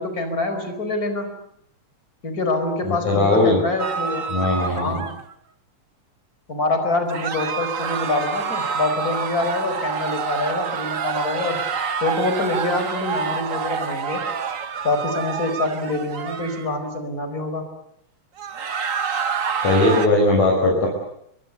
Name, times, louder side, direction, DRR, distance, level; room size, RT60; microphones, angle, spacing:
voice 1, 0.0-1.4 2.2-4.3 4.8-5.1 6.5-11.6 12.0-14.2 14.8-17.6, left 2 dB, 25° left, 7 dB, 5.0 m, -25 dB
voice 2, 2.8-3.6 4.3-5.0 19.6-20.9, left 2 dB, 65° left, -2 dB, 7.1 m, -19 dB
sound 1, 3.8-5.3 7.1-16.7 18.4-20.1, right 6 dB, 85° right, 0.7 m, -27 dB
30.0 x 23.0 x 8.2 m, 0.74 s
omnidirectional pair, 3.5 m